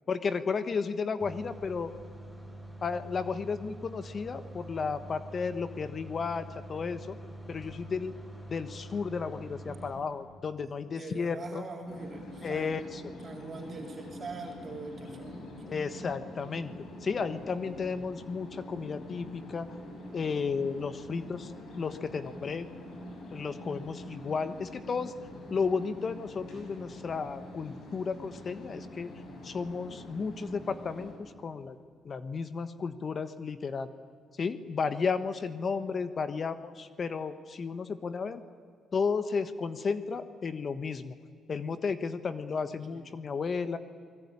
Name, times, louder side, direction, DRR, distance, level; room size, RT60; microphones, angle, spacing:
voice 1, 0.1-1.9 2.8-7.2 7.5-8.1 8.5-11.6 12.4-13.0 15.7-16.7 17.0-19.7 20.1-21.5 21.8-22.7 23.3-25.1 25.5-29.1 29.4-31.8 32.0-33.9 34.4-38.4 38.9-41.1 41.5-43.8, left 5 dB, 45° left, 11 dB, 1.3 m, -33 dB
sound 1, 1.2-9.9, right 1 dB, 10° left, 7.4 m, -45 dB
voice 2, 10.6-12.8 13.2-15.5 20.9-21.3 42.9-43.1, right 3 dB, 45° right, 1 dB, 3.9 m, -43 dB
sound 2, 11.9-31.1, left 1 dB, 70° left, 7.1 m, -45 dB
28.5 x 20.5 x 10.0 m, 2.1 s
cardioid pair, 90°, 0 cm